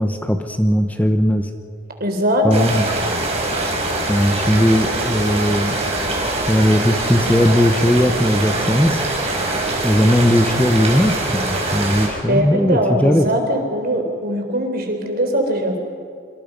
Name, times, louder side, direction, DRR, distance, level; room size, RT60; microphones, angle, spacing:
voice 1, 0.0-1.5 2.4-2.8 4.1-5.8 6.5-9.0 9.8-13.3, equal, 10° left, 6 dB, 1.0 m, -17 dB
voice 2, 2.0-2.7 12.3-15.8, equal, 50° right, 4 dB, 3.9 m, -21 dB
sound 1, 2.5-12.1, right 2 dB, 35° right, 5.1 m, -23 dB
26.5 x 25.5 x 5.3 m, 2.2 s
head